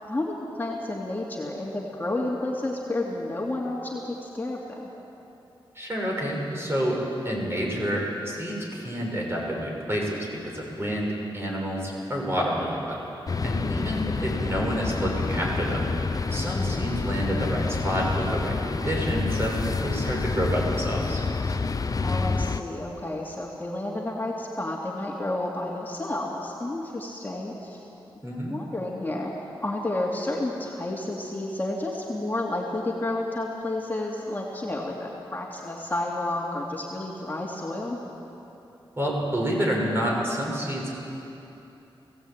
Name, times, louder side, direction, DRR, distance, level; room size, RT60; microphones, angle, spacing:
voice 1, 0.0-4.9 13.6-14.1 22.0-27.8 28.2-29.3 29.6-38.0, left 2 dB, 20° left, -3 dB, 2.7 m, -31 dB
voice 2, 5.8-13.1 13.4-15.9 16.3-21.2 28.2-28.6 39.0-40.9, equal, 25° right, -2 dB, 6.0 m, -28 dB
sound 1, 13.3-22.6, left 4 dB, 40° left, 0.7 m, -28 dB
20.5 x 16.5 x 8.9 m, 3.0 s
wide cardioid pair, 90°, 9 cm